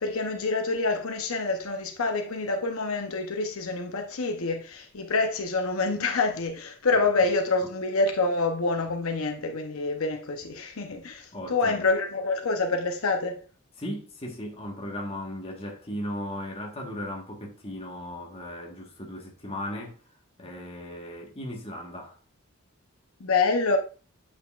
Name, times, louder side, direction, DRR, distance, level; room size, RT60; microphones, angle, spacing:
voice 1, 0.0-13.4 23.2-23.8, left 3 dB, 75° left, 0.8 m, -27 dB
voice 2, 11.3-11.9 13.8-20.0 20.4-22.2, left 1 dB, 30° left, 1.4 m, -37 dB
8.0 x 5.2 x 2.4 m
head